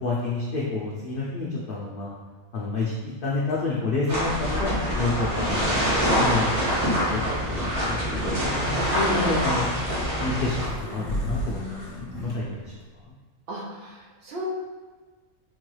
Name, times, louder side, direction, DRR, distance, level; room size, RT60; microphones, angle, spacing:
voice 1, 0.0-2.1 2.5-2.9 3.2-5.8 6.2-8.4 8.9-9.7 10.2-11.8 12.2-12.6, left 3 dB, 80° left, -5 dB, 0.4 m, -29 dB
sound 1, 4.1-10.7, equal, 85° right, 1.9 m, -25 dB
sound 2, 8.0-12.4, equal, 35° left, 1.1 m, -35 dB
voice 2, 13.5-14.4, right 2 dB, 50° right, -4 dB, 0.8 m, -36 dB
4.4 x 2.3 x 3.0 m, 1.4 s
omnidirectional pair, 1.6 m